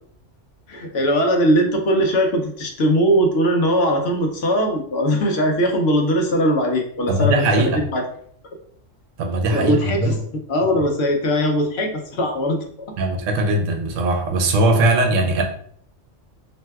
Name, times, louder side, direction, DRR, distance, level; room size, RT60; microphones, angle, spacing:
voice 1, 0.7-8.0 9.5-10.1 10.5-12.9, equal, 65° left, 3 dB, 0.8 m, -20 dB
voice 2, 7.1-7.8 9.2-10.2 13.0-15.4, right 1 dB, 90° right, 3 dB, 1.0 m, -19 dB
3.3 x 2.6 x 2.2 m, 0.62 s
omnidirectional pair, 1.3 m